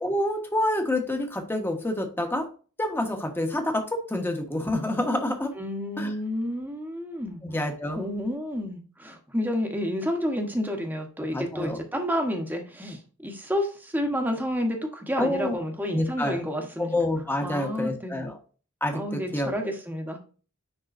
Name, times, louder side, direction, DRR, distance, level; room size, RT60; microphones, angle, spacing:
voice 1, 0.0-2.4 2.8-5.5 6.0-6.1 7.4-8.1 11.3-11.8 15.2-15.6 15.9-16.4 16.8-18.4 18.8-19.5, left 1 dB, 10° left, 3 dB, 1.2 m, -28 dB
voice 2, 5.5-7.4 7.9-16.9 17.4-18.2 18.9-20.2, equal, 10° right, 3 dB, 1.1 m, -30 dB
10.0 x 3.8 x 2.6 m, 0.37 s
head